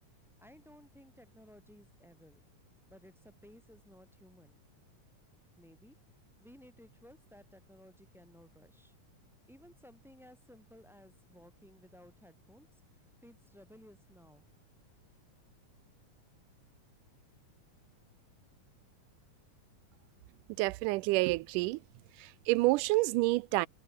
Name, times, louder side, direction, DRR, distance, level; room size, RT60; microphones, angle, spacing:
voice 1, 0.4-2.4 2.9-4.6 5.5-6.0 6.4-8.9 9.5-14.5, equal, ahead, 7.5 m, -58 dB
voice 2, 20.6-21.8 22.2-23.7, right 21 dB, 85° right, 2.1 m, -28 dB
omnidirectional pair, 3.7 m